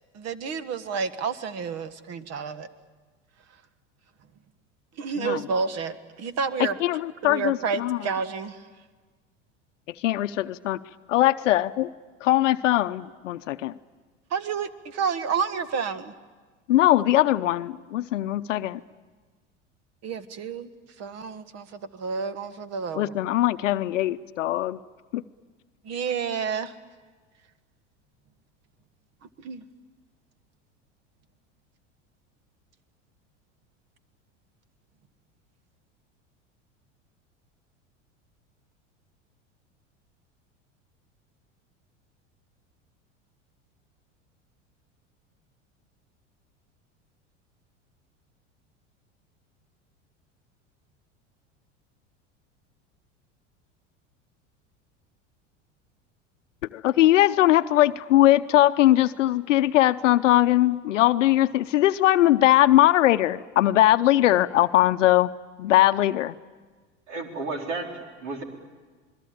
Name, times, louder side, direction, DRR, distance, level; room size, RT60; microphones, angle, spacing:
voice 1, 0.1-2.7 5.0-6.8 7.2-8.6 14.3-16.1 20.0-20.7 21.0-23.1 25.8-26.7 29.4-29.6, right 5 dB, 45° right, 13 dB, 1.7 m, -30 dB
voice 2, 6.8-8.0 10.0-10.8 11.1-11.9 12.2-13.7 16.7-18.8 23.0-24.8 25.1-25.2 56.7-65.3 65.6-66.3, left 14 dB, 80° left, 12 dB, 0.7 m, -20 dB
voice 3, 67.1-68.4, right 3 dB, 75° right, 3 dB, 4.3 m, -33 dB
28.0 x 21.5 x 8.7 m, 1.4 s
hypercardioid pair, 85°, 36 cm